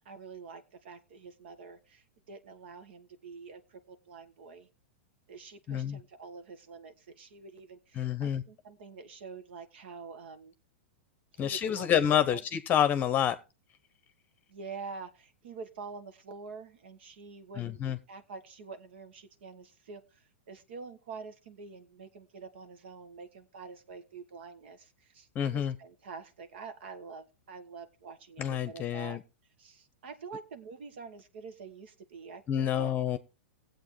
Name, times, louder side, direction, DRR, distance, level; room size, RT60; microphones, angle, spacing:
voice 1, 0.0-4.7 5.3-10.5 11.3-12.4 14.5-17.8 18.1-29.2 29.6-32.9, right 5 dB, 65° right, 1.3 m, -47 dB
voice 2, 5.7-6.0 8.0-8.4 11.4-13.4 17.6-18.0 25.3-25.7 28.4-29.2 32.5-33.2, left 10 dB, 30° left, 0.8 m, -28 dB
19.0 x 8.0 x 3.2 m
hypercardioid pair, 110°, 6 cm